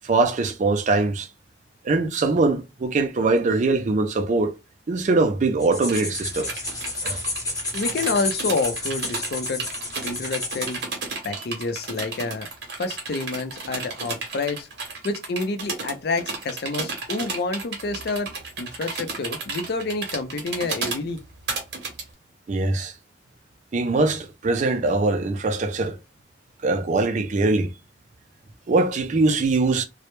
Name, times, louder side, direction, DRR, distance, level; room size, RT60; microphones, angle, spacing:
voice 1, 0.0-1.3 1.8-4.5 4.9-6.5 7.0-7.2 22.5-22.9 23.7-26.0 26.6-27.7 28.7-29.8, right 3 dB, 40° right, 0.4 m, -22 dB
sound 1, 5.6-10.9, left 2 dB, 20° left, 0.7 m, -31 dB
sound 2, 5.9-22.0, right 4 dB, 60° right, 0.8 m, -33 dB
voice 2, 7.7-9.6 10.0-10.8 11.2-12.5 12.8-14.7 15.0-18.3 18.6-21.2, left 3 dB, 60° left, 0.4 m, -28 dB
2.1 x 2.0 x 2.9 m
head